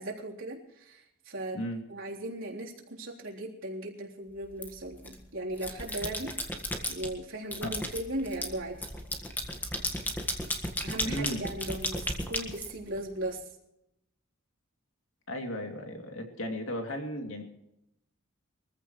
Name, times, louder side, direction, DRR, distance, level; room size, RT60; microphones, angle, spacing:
voice 1, 0.0-1.6 1.9-6.3 6.9-8.8 10.8-13.4, right 1 dB, 75° right, -2 dB, 3.7 m, -37 dB
sound 1, 4.6-5.1 5.5-7.1 7.5-13.3, left 1 dB, 10° left, 1.6 m, -34 dB
voice 2, 11.0-11.5 15.3-17.4, equal, 75° left, 3 dB, 2.8 m, -35 dB
24.0 x 15.0 x 3.2 m, 0.85 s
head